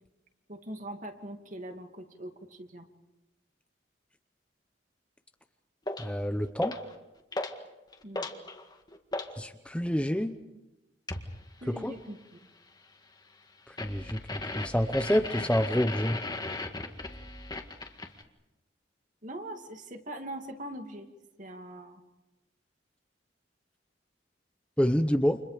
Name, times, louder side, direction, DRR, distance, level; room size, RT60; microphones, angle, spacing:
voice 1, 0.5-2.9 8.0-8.3 10.2-10.3 11.6-12.2 19.2-21.1 21.4-22.0, right 1 dB, 45° right, 5 dB, 2.5 m, -42 dB
sound 1, 5.9-6.1 6.6-6.9 7.3-7.6 7.9-9.3 11.1-11.3 13.8-18.2, left 2 dB, 20° left, 1.9 m, -37 dB
voice 2, 6.0-6.8 9.4-10.4 11.7-12.0 13.7-16.2 24.8-25.4, equal, 5° left, 8 dB, 0.8 m, -28 dB
30.0 x 27.5 x 5.1 m, 1.0 s
head